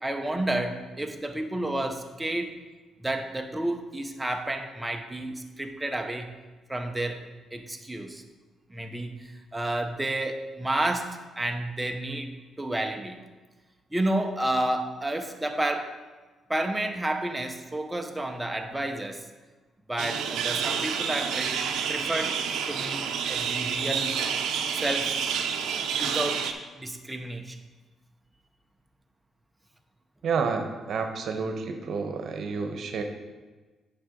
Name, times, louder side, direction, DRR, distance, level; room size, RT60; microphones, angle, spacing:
voice 1, 0.0-2.5 3.0-6.3 6.7-7.2 7.5-8.2 8.7-12.3 12.6-13.2 13.9-15.9 16.5-19.3 19.9-21.6 21.9-22.4 22.7-24.2 24.7-25.2 26.0-26.5 26.8-27.6, right 1 dB, 10° right, 4 dB, 0.8 m, -30 dB
sound 1, 20.0-26.5, right 7 dB, 85° right, 0.6 m, -29 dB
voice 2, 30.2-33.0, right 5 dB, 65° right, 5 dB, 1.0 m, -30 dB
8.6 x 5.8 x 3.8 m, 1.3 s
cardioid pair, 90°, 0 cm